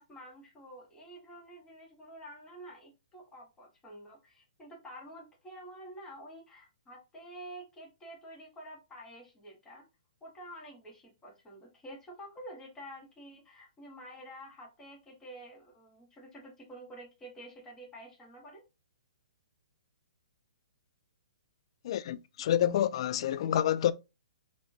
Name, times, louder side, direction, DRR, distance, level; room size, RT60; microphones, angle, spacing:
voice 1, 0.0-9.8 10.2-18.6, right 1 dB, 15° left, 1.7 m, -49 dB
voice 2, 21.8-23.9, left 11 dB, 50° left, 0.3 m, -28 dB
4.3 x 3.0 x 2.8 m
hypercardioid pair, 130°, 4 cm